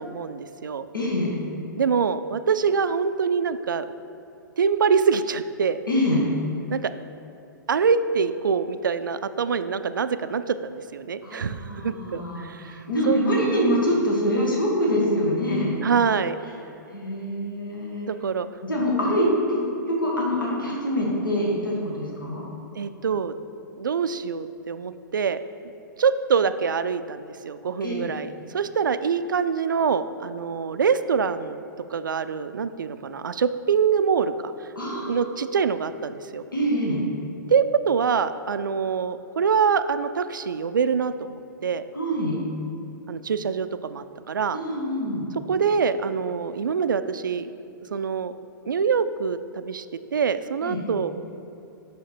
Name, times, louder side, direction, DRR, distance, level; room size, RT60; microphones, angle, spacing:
voice 1, 0.0-0.9 1.8-3.9 4.6-5.8 6.7-6.9 7.7-12.7 13.1-13.8 15.8-16.4 18.1-18.5 22.8-23.3 23.8-25.4 26.0-31.6 31.9-34.3 34.9-36.4 37.5-41.8 43.1-44.6 45.5-47.5 47.9-48.3 48.7-49.8 50.1-51.2, right 6 dB, 70° right, 12 dB, 0.4 m, -25 dB
voice 2, 0.9-1.3 5.9-6.2 11.2-15.8 16.9-18.1 18.6-19.6 19.9-22.4 27.8-28.1 34.7-35.2 36.5-37.0 41.9-42.4 44.5-45.2 50.6-50.8, equal, 80° left, -4 dB, 1.7 m, -25 dB
7.3 x 5.8 x 4.4 m, 2.8 s
figure-of-eight pair, 110°, 11 cm